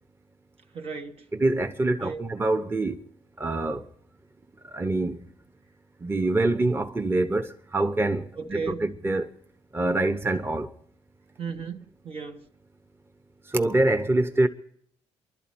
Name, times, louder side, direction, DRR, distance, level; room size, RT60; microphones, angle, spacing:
voice 1, 0.7-1.3 2.0-2.2 8.4-8.8 11.4-12.5, right 5 dB, 55° right, 1.1 m, -35 dB
voice 2, 1.3-3.0 3.4-3.9 4.6-5.3 6.0-9.3 9.7-10.7 13.5-14.5, right 2 dB, 20° right, 1.0 m, -25 dB
28.5 x 12.0 x 4.3 m
supercardioid pair, 55°, 12 cm